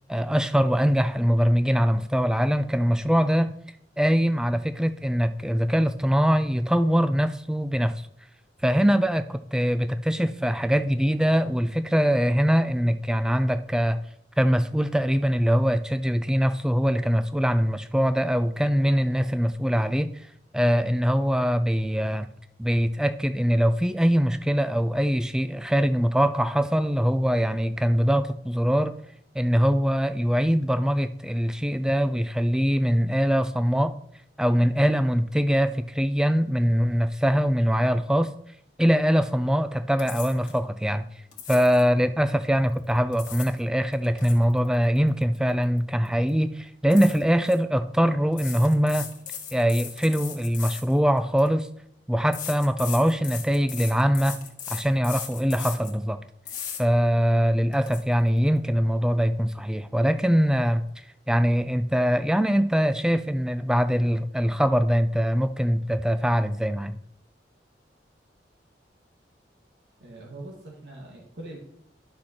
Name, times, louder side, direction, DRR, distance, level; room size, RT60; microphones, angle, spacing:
voice 1, 0.1-3.5 4.0-8.0 8.6-14.0 14.4-20.1 20.5-22.3 22.6-29.0 29.3-33.9 34.4-38.3 38.8-41.0 41.5-49.1 49.5-51.7 52.1-54.4 54.7-56.2 56.8-60.8 61.3-67.0, equal, 5° right, 0.3 m, -23 dB
sound 1, 40.0-40.6 41.3-41.9 42.9-43.6 43.9-45.8 46.1-46.3 46.9-47.6 48.3-51.5 52.3-56.0 56.5-56.8 57.3-57.4 57.7-58.0, left 8 dB, 45° left, 1.5 m, -38 dB
voice 2, 70.0-71.6, right 2 dB, 85° right, 1.7 m, -42 dB
11.5 x 6.3 x 2.9 m
head